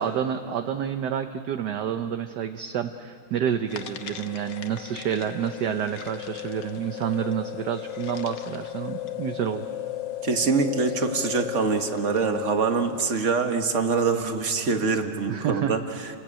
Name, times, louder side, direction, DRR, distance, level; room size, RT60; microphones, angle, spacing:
voice 1, 0.0-9.6 15.3-15.7, right 9 dB, 60° right, 8 dB, 1.2 m, -29 dB
sound 1, 3.7-13.2, left 12 dB, 60° left, 1.6 m, -36 dB
voice 2, 10.2-16.2, right 4 dB, 35° right, 6 dB, 1.7 m, -24 dB
29.5 x 21.0 x 8.9 m, 2.3 s
omnidirectional pair, 2.3 m